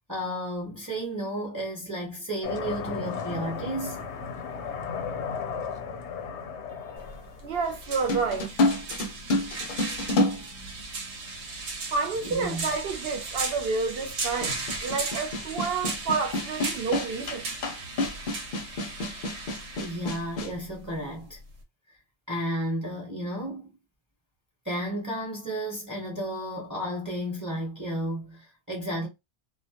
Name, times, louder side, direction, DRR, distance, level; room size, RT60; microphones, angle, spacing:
voice 1, 0.1-4.0 12.2-12.6 19.8-21.4 22.3-23.7 24.6-29.1, right 1 dB, 20° right, 0.9 m, -32 dB
sound 1, 2.4-8.4, left 6 dB, 80° left, 0.9 m, -35 dB
sound 2, 7.0-21.6, right 3 dB, 90° right, 1.0 m, -37 dB
voice 2, 7.4-8.5 11.9-17.5, right 4 dB, 65° right, 0.8 m, -29 dB
sound 3, 8.1-11.3 12.2-12.3 14.4-20.6, left 2 dB, 55° left, 0.7 m, -29 dB
2.2 x 2.1 x 2.7 m
omnidirectional pair, 1.1 m